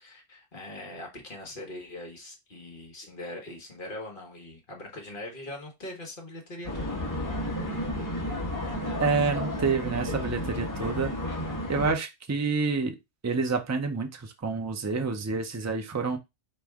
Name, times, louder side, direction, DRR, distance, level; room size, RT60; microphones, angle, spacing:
voice 1, 0.0-7.2, left 1 dB, 45° left, 1.4 m, -41 dB
sound 1, 6.6-11.9, left 1 dB, 15° left, 1.5 m, -32 dB
voice 2, 9.0-11.1 11.7-12.9 13.2-16.2, right 4 dB, 20° right, 0.4 m, -28 dB
4.3 x 3.2 x 3.5 m
omnidirectional pair, 1.2 m